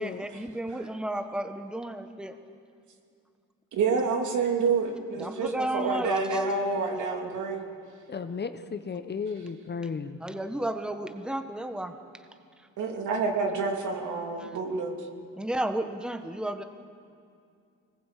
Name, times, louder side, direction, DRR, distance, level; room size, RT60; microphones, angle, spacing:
voice 1, 0.0-2.4 5.2-6.5 10.2-11.9 14.4-14.6 15.4-16.6, right 1 dB, 5° right, 7 dB, 1.4 m, -32 dB
voice 2, 3.7-7.7 12.8-14.9, right 4 dB, 75° right, 2 dB, 3.1 m, -28 dB
voice 3, 8.1-10.2, left 5 dB, 35° left, 10 dB, 1.2 m, -34 dB
25.0 x 20.0 x 8.3 m, 2.4 s
cardioid pair, 90°, 30 cm